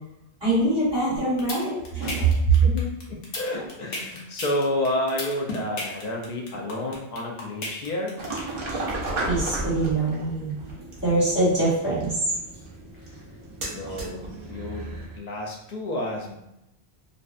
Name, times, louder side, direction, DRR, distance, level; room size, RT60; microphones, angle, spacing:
voice 1, 0.4-2.3 3.5-3.6 8.7-8.8 9.2-10.5 11.0-12.2, right 2 dB, 25° right, -10 dB, 1.2 m, -24 dB
sound 1, 1.2-8.4, left 2 dB, 90° left, 1.0 m, -33 dB
voice 2, 2.5-8.2 13.6-16.3, left 1 dB, 50° left, -1 dB, 0.5 m, -30 dB
sound 2, 8.2-15.2, right 2 dB, 60° right, 0.8 m, -34 dB
2.6 x 2.1 x 2.4 m, 0.86 s
omnidirectional pair, 1.1 m